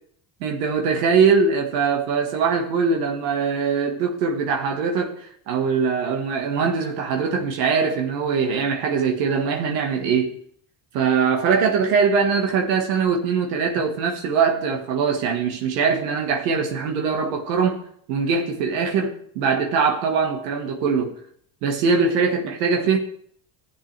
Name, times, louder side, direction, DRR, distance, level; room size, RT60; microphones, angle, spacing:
voice 1, 0.4-10.4 10.9-17.8 18.1-21.2 21.6-23.0, right 5 dB, 85° right, 2 dB, 1.7 m, -22 dB
14.0 x 7.9 x 3.4 m, 0.64 s
supercardioid pair, 85°, 48 cm